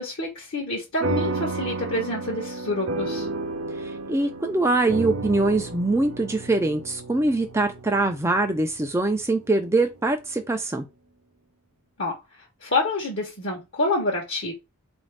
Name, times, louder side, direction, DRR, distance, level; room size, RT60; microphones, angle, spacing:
voice 1, 0.0-3.3 12.0-12.1 12.6-14.5, left 2 dB, 55° left, 1.0 m, -27 dB
sound 1, 1.0-9.8, right 2 dB, 75° right, 0.6 m, -32 dB
voice 2, 3.8-10.9, right 2 dB, 10° right, 0.4 m, -23 dB
4.0 x 2.6 x 3.3 m
head